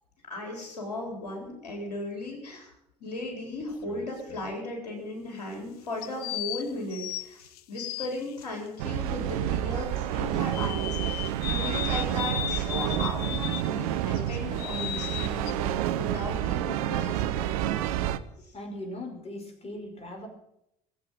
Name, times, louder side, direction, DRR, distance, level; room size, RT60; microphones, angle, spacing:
voice 1, 0.3-2.7 3.0-17.5 18.4-18.5, left 1 dB, 75° left, 0 dB, 4.1 m, -36 dB
sound 1, 3.6-4.6 6.0-8.5 10.5-13.8 14.1-15.5, left 14 dB, 50° left, 0.6 m, -36 dB
sound 2, 8.8-18.2, right 12 dB, 65° right, 0.8 m, -29 dB
voice 2, 18.5-20.3, left 1 dB, 30° left, 4 dB, 5.2 m, -39 dB
21.5 x 7.7 x 7.6 m, 0.80 s
figure-of-eight pair, 55°, 20 cm